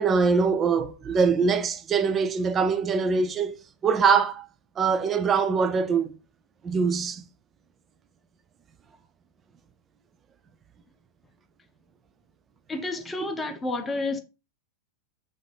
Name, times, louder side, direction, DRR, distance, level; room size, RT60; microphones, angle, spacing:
voice 1, 0.0-3.5 3.8-4.4 4.8-6.1 6.6-7.2, right 5 dB, 25° right, 0.4 m, -23 dB
voice 2, 12.7-14.2, left 2 dB, 15° left, 0.6 m, -30 dB
3.7 x 2.6 x 3.3 m
figure-of-eight pair, 90°, 0 cm